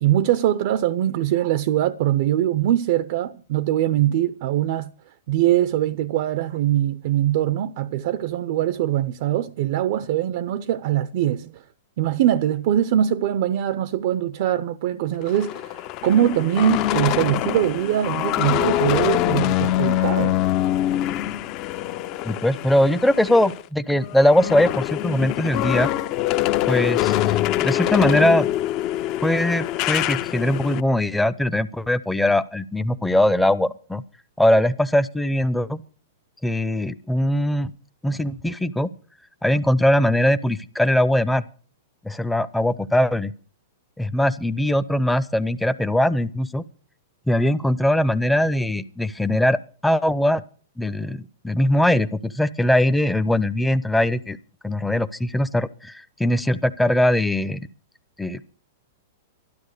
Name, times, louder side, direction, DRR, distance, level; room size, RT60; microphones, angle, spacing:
voice 1, 0.0-4.9 5.3-11.6 12.0-20.4, right 12 dB, 55° right, 0.7 m, -22 dB
sound 1, 15.2-23.6 23.9-30.8, left 14 dB, 40° left, 0.7 m, -24 dB
voice 2, 22.2-25.9 26.7-28.5 29.2-34.0 34.4-35.8 36.4-37.7 38.0-38.9 39.4-41.4 42.0-43.3 44.0-46.6 47.3-49.6 49.8-50.4 50.8-54.4 54.6-57.7 58.2-58.4, left 1 dB, 5° left, 0.7 m, -21 dB
12.5 x 12.0 x 6.7 m
hypercardioid pair, 140°, 0 cm